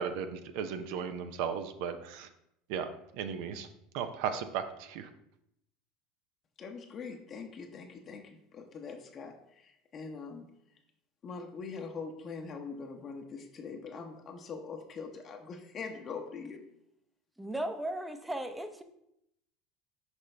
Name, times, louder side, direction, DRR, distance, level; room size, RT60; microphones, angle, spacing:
voice 1, 0.0-2.3 2.7-3.7 3.9-5.1, right 7 dB, 70° right, 9 dB, 0.5 m, -36 dB
voice 2, 6.6-10.5 11.2-16.6, left 5 dB, 40° left, 3 dB, 0.7 m, -43 dB
voice 3, 17.4-18.8, right 1 dB, 5° right, 8 dB, 0.7 m, -36 dB
6.0 x 5.2 x 3.3 m, 0.78 s
hypercardioid pair, 90°, 0 cm